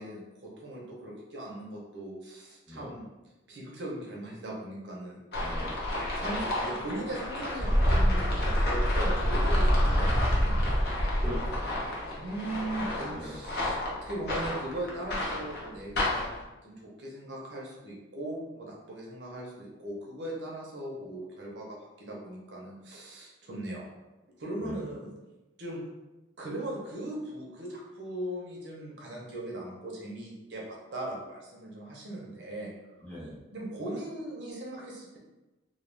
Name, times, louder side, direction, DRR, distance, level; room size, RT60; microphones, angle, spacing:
voice 1, 0.0-3.0 3.5-5.2 6.1-10.9 12.2-16.3 16.6-23.9 24.4-25.1 25.6-25.8 26.4-32.7 33.5-35.2, right 1 dB, 65° right, -3 dB, 0.6 m, -39 dB
voice 2, 2.7-3.0 5.4-5.8 11.1-11.7 13.0-13.4 24.6-24.8 33.0-33.4, equal, 10° left, -10 dB, 0.9 m, -41 dB
sound 1, 5.3-16.4, equal, 60° left, 0.7 m, -28 dB
2.3 x 2.1 x 3.2 m, 1.0 s
head